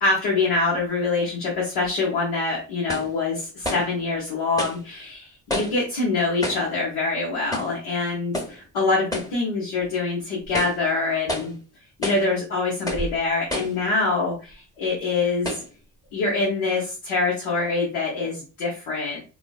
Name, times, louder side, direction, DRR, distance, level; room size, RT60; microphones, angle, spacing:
voice 1, 0.0-11.5 12.0-15.6 16.1-19.2, left 3 dB, 85° left, -5 dB, 0.9 m, -25 dB
sound 1, 1.9-2.0 2.9-3.2 3.6-3.9 4.6-4.8 5.5-5.9 6.4-6.7 7.5-7.8 8.3-8.6 9.1-9.4 9.8-9.9 10.4-10.8 11.3-11.6 12.0-12.3 12.9-13.1 13.5-13.8 14.5-14.6 15.4-15.7, left 1 dB, 5° left, 0.8 m, -30 dB
3.1 x 2.1 x 2.3 m, 0.32 s
hypercardioid pair, 40°, 49 cm